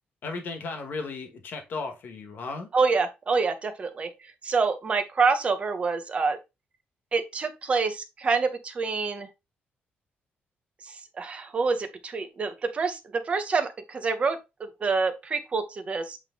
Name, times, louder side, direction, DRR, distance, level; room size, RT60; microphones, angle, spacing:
voice 1, 0.2-2.7, left 4 dB, 55° left, 1.5 m, -35 dB
voice 2, 2.7-4.1 4.4-6.4 7.1-9.3 11.2-16.2, right 4 dB, 30° right, 1.0 m, -27 dB
8.1 x 3.4 x 3.7 m
cardioid pair, 160°, 4 cm